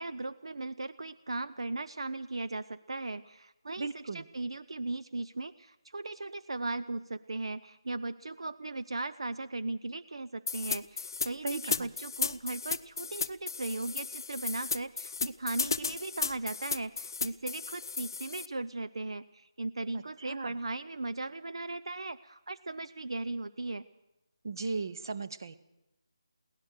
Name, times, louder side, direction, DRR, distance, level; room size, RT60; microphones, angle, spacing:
voice 1, 0.0-23.8, right 2 dB, 80° right, 13 dB, 0.6 m, -37 dB
voice 2, 3.8-4.2 11.4-11.9 19.9-20.5 24.4-25.6, right 3 dB, 45° right, 13 dB, 0.9 m, -37 dB
sound 1, 10.5-18.5, left 4 dB, 45° left, 0.6 m, -34 dB
22.5 x 17.5 x 6.6 m, 0.92 s
figure-of-eight pair, 170°, 3 cm